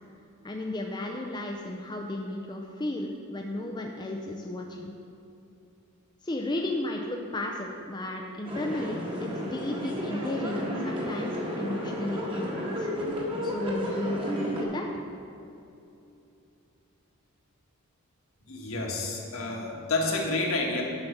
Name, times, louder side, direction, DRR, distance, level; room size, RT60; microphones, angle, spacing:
voice 1, 0.4-4.9 6.2-12.9 13.4-14.9, left 1 dB, 20° left, 1 dB, 0.5 m, -34 dB
sound 1, 8.4-14.6, equal, 25° right, 1.4 m, -32 dB
voice 2, 18.4-20.8, left 2 dB, 65° left, -1 dB, 1.5 m, -29 dB
9.8 x 5.6 x 5.9 m, 2.7 s
head